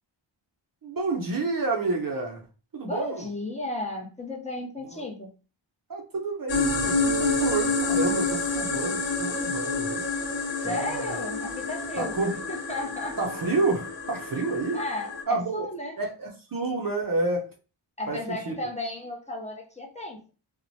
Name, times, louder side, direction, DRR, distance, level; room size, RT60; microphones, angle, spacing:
voice 1, 0.8-2.4 2.7-3.3 4.9-5.0 5.9-10.0 10.6-11.2 12.0-12.4 13.2-14.8 15.3-15.7 16.0-17.5 18.1-18.5, right 3 dB, 45° right, 0.5 m, -29 dB
voice 2, 2.8-5.3 10.6-12.1 12.5-13.2 14.7-16.0 18.0-20.3, left 2 dB, 15° left, 0.6 m, -34 dB
sound 1, 6.5-15.2, left 3 dB, 65° left, 1.0 m, -28 dB
3.0 x 2.1 x 2.6 m
wide cardioid pair, 75°, 49 cm